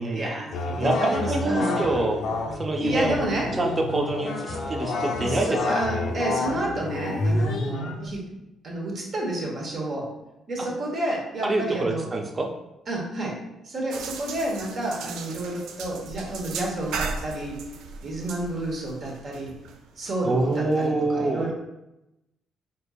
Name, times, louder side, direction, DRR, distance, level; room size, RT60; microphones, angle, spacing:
voice 1, 0.0-2.1 2.8-3.5 5.2-8.3 8.6-10.1 10.5-12.1 12.9-13.4 13.6-17.6 18.0-19.5 20.0-21.5, right 1 dB, 50° right, -2 dB, 1.0 m, -30 dB
sound 1, 0.5-8.1, left 2 dB, 80° left, 0.4 m, -29 dB
voice 2, 0.8-2.2 2.5-3.3 3.6-5.5 5.7-5.8 10.6-10.7 11.4-12.5 20.2-21.5, right 2 dB, 30° right, 2 dB, 0.5 m, -26 dB
sound 2, 13.9-20.9, right 5 dB, 90° right, 0.3 m, -37 dB
4.3 x 2.6 x 2.3 m, 0.91 s
cardioid pair, 90°, 0 cm